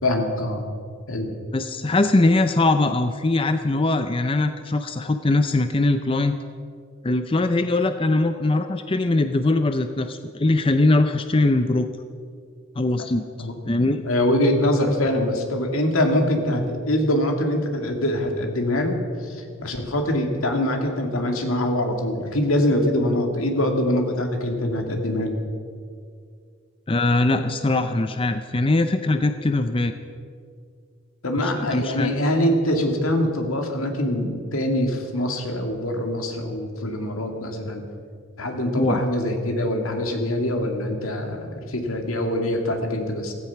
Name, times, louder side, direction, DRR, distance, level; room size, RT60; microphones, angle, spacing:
voice 1, 0.0-0.7 1.1-1.3 13.4-13.5 14.0-25.4 31.2-37.9 38.4-43.3, left 1 dB, 80° left, 3 dB, 2.4 m, -24 dB
voice 2, 1.5-6.4 7.0-11.9 12.8-14.0 26.9-29.9 31.4-32.1 38.8-39.0, left 2 dB, 25° left, 8 dB, 0.5 m, -21 dB
15.5 x 15.0 x 5.9 m, 2.2 s
head